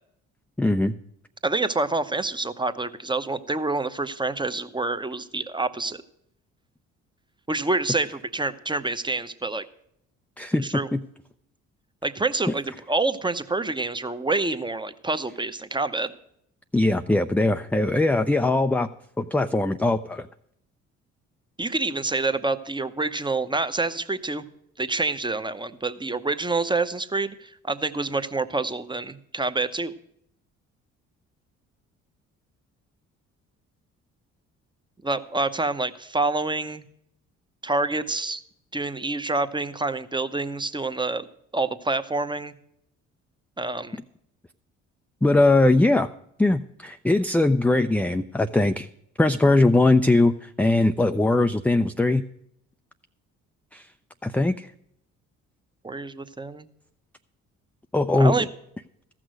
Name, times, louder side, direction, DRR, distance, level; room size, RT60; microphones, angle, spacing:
voice 1, 0.6-0.9 10.4-10.7 10.9-11.0 16.7-18.9 19.2-20.3 45.2-46.1 46.4-48.9 49.2-52.2 53.7-53.9 54.2-54.7 57.9-58.4, left 2 dB, 5° left, 8 dB, 0.4 m, -20 dB
voice 2, 1.4-6.0 7.5-9.6 10.6-10.9 12.0-16.1 21.6-24.4 24.8-29.9 35.0-36.8 37.6-38.4 38.7-41.3 41.5-42.5 43.6-44.0 55.8-56.7 58.2-58.5, right 3 dB, 15° right, 11 dB, 0.8 m, -27 dB
14.0 x 6.1 x 6.3 m, 0.73 s
hypercardioid pair, 60°, 34 cm